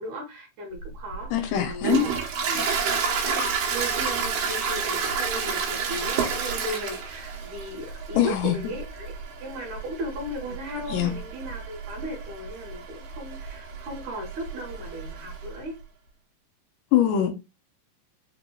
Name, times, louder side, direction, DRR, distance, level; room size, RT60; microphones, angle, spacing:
voice 1, 0.0-2.1 2.5-2.8 3.2-3.4 3.7-9.1 9.4-15.7, equal, 70° right, 2.5 m, -36 dB
Toilet flush, 0.8-15.5, right 5 dB, 85° right, 2.5 m, -30 dB
voice 2, 1.3-2.1 2.5-2.7 8.1-8.6 10.9-11.1 16.9-17.3, left 11 dB, 80° left, 2.2 m, -23 dB
5.4 x 2.9 x 2.2 m
omnidirectional pair, 3.9 m